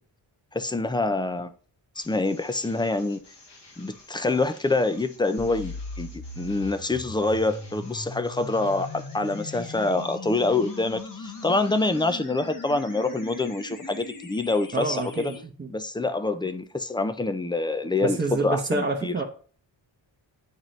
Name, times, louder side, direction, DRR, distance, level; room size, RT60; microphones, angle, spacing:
voice 1, 0.5-1.5 2.0-3.2 3.8-6.1 6.4-15.3 15.7-19.1, left 2 dB, 10° left, 0.3 m, -26 dB
sound 1, 1.9-12.3, left 2 dB, 60° left, 1.7 m, -52 dB
sound 2, 5.4-15.4, left 3 dB, 45° left, 1.1 m, -39 dB
voice 2, 14.7-15.7 18.0-19.2, right 3 dB, 25° right, 0.8 m, -28 dB
8.9 x 3.9 x 3.1 m
wide cardioid pair, 120°, 46 cm